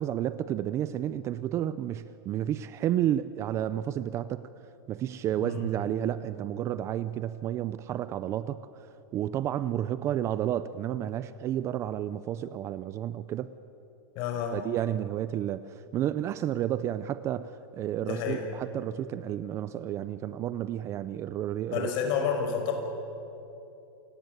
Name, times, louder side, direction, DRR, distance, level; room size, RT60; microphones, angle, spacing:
voice 1, 0.0-4.4 4.9-8.9 9.1-13.5 14.5-21.9, right 11 dB, 25° right, 15 dB, 0.5 m, -31 dB
voice 2, 14.1-14.6 18.0-18.4 21.7-22.7, left 7 dB, 40° left, 4 dB, 5.0 m, -30 dB
28.0 x 18.5 x 9.1 m, 2.8 s
supercardioid pair, 160°, 12 cm